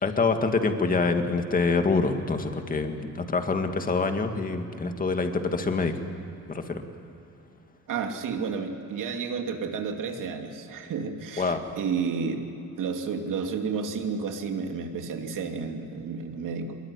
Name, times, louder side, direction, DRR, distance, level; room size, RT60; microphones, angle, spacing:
voice 1, 0.0-3.0 3.3-5.9 6.5-6.8 11.4-11.6, left 4 dB, 25° left, 6 dB, 1.9 m, -25 dB
voice 2, 7.9-12.4 12.8-16.8, right 5 dB, 75° right, 4 dB, 2.8 m, -31 dB
24.5 x 22.0 x 9.9 m, 2.9 s
cardioid pair, 165°, 32 cm